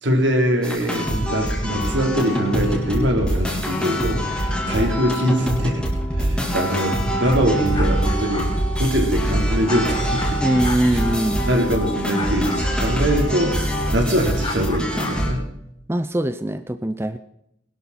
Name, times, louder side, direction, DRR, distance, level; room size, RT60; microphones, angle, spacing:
voice 1, 0.0-5.9 6.2-8.5 8.8-10.4 10.9-11.0 11.5-13.6 13.9-15.5, equal, 75° right, 2 dB, 3.5 m, -22 dB
sound 1, 0.6-15.3, equal, 5° left, 3.2 m, -24 dB
sound 2, 7.2-10.3 10.6-10.8 12.1-12.6 14.4-15.1, left 3 dB, 25° left, 3.5 m, -33 dB
voice 2, 10.4-11.5 15.9-17.2, right 1 dB, 15° right, 11 dB, 0.5 m, -22 dB
20.5 x 12.5 x 4.2 m, 0.78 s
head